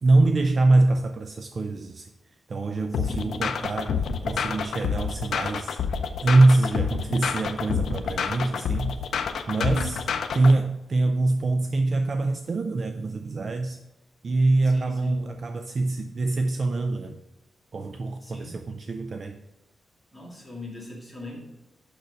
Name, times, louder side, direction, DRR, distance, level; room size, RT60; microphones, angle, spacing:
voice 1, 0.0-2.1 2.5-5.8 6.2-9.0 9.5-10.0 10.3-13.8 14.2-17.2 17.7-19.4, right 2 dB, 40° right, 0.4 m, -24 dB
sound 1, 2.9-10.5, left 6 dB, 80° left, 0.6 m, -28 dB
voice 2, 2.9-3.5 9.6-10.1 14.6-15.2 18.2-18.7 20.1-21.4, left 1 dB, 5° right, 2.3 m, -41 dB
6.6 x 6.0 x 5.2 m
wide cardioid pair, 160°, 0 cm